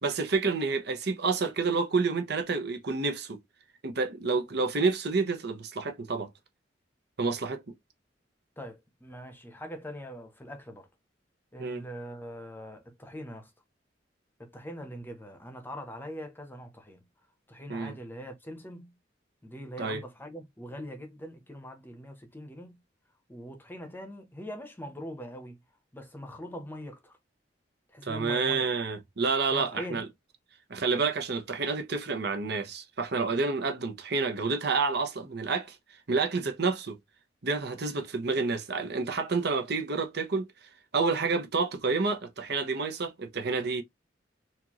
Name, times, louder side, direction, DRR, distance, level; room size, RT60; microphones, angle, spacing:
voice 1, 0.0-3.4 3.8-6.3 7.2-7.6 11.6-11.8 17.7-17.9 19.8-20.0 28.0-30.0 30.7-35.8 36.1-37.0 37.4-43.8, right 4 dB, 65° right, 0.9 m, -29 dB
voice 2, 8.6-10.9 11.5-13.5 14.4-17.0 17.5-19.0 19.4-22.8 23.3-25.6 25.9-27.2 27.9-28.7 29.5-30.1, equal, 10° left, 0.8 m, -42 dB
4.4 x 2.6 x 2.9 m
head